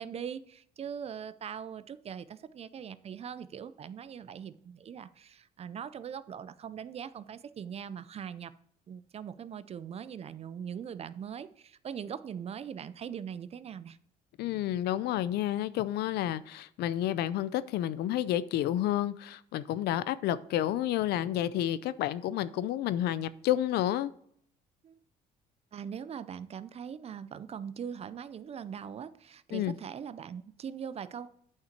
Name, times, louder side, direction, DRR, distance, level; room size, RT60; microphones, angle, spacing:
voice 1, 0.0-8.5 8.9-14.0 24.8-25.0 25.7-31.3, right 8 dB, 35° right, 0.5 m, -41 dB
voice 2, 14.4-24.1 29.5-29.7, left 12 dB, 75° left, 0.5 m, -30 dB
9.1 x 5.8 x 4.4 m
cardioid pair, 110°, 17 cm